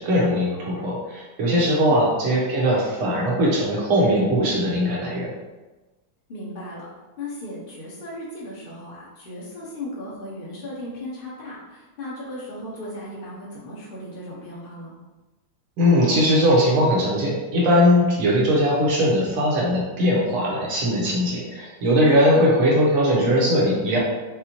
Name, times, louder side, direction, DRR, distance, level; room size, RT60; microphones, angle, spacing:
voice 1, 0.0-5.3 15.8-24.0, equal, 75° right, -4 dB, 1.9 m, -20 dB
voice 2, 6.3-6.9 7.2-14.9 22.3-22.5, left 1 dB, 35° left, -6 dB, 1.0 m, -36 dB
5.5 x 2.3 x 2.9 m, 1.2 s
omnidirectional pair, 2.4 m